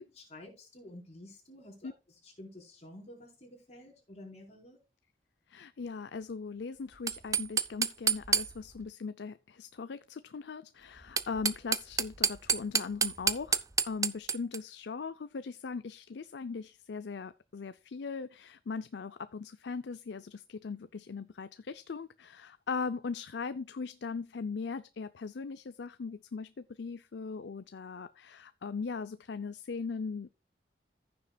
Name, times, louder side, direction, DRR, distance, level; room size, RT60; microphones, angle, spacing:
voice 1, 0.0-4.8, left 1 dB, 40° left, 4.3 m, -51 dB
voice 2, 5.5-30.3, left 5 dB, 75° left, 0.5 m, -39 dB
sound 1, 6.9-8.8 11.0-14.6, right 6 dB, 20° right, 0.5 m, -30 dB
15.0 x 6.9 x 2.3 m
head